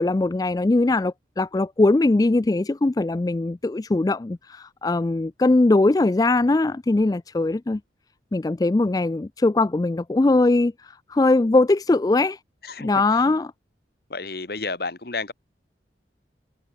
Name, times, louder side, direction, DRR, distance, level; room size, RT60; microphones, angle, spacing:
voice 1, 0.0-7.8 8.3-12.4 12.8-13.5, left 2 dB, 20° left, 0.3 m, -21 dB
voice 2, 14.1-15.3, left 3 dB, 55° left, 1.4 m, -31 dB
head